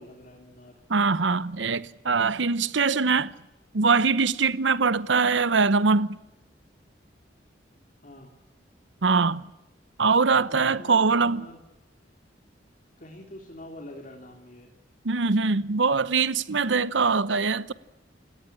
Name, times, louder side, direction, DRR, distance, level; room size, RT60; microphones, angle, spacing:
voice 1, 0.0-0.7 8.0-8.3 10.5-11.6 13.0-14.7, left 1 dB, 45° left, 3.4 m, -45 dB
voice 2, 0.9-3.3 3.7-6.2 9.0-9.5 10.0-11.5 15.0-17.7, right 4 dB, 85° right, 0.9 m, -22 dB
28.5 x 17.5 x 10.0 m
head